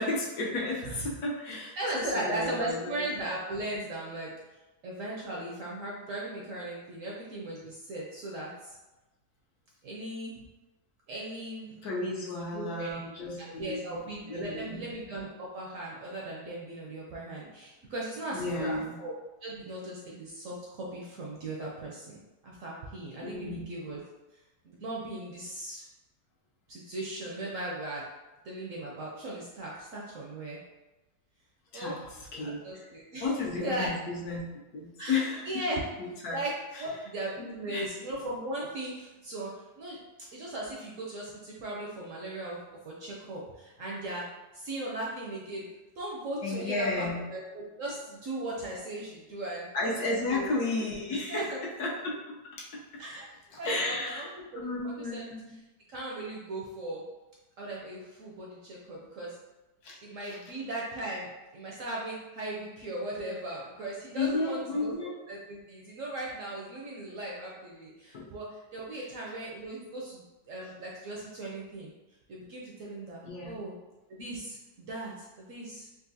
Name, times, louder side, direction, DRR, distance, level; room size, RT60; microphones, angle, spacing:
voice 1, 0.0-3.1 11.8-14.9 18.3-19.0 23.2-23.6 31.7-32.0 32.3-32.9 33.2-34.4 34.7-35.6 36.0-36.4 36.7-36.8 37.7-37.9 46.4-47.3 49.7-52.1 52.6-52.7 53.6-55.4 59.8-60.3 64.1-65.1 68.1-68.2 68.9-69.1 73.2-73.6, left 3 dB, 70° left, -3 dB, 1.1 m, -33 dB
voice 2, 1.5-4.3 4.8-8.7 9.8-10.4 11.1-11.8 12.1-13.0 13.4-19.1 19.4-24.0 24.6-25.8 26.7-28.0 28.4-30.6 31.7-32.0 32.4-33.3 33.6-33.9 35.0-35.8 36.3-39.5 39.8-40.0 40.3-42.6 42.8-44.2 44.5-45.6 46.0-49.7 50.3-50.5 51.3-51.6 53.0-53.3 53.6-54.3 54.5-55.3 55.9-57.0 57.6-59.4 60.0-64.9 65.3-71.9 72.3-73.7 74.1-75.9, right 1 dB, 65° right, -4 dB, 0.8 m, -38 dB
3.9 x 2.4 x 2.6 m, 1.1 s
omnidirectional pair, 1.8 m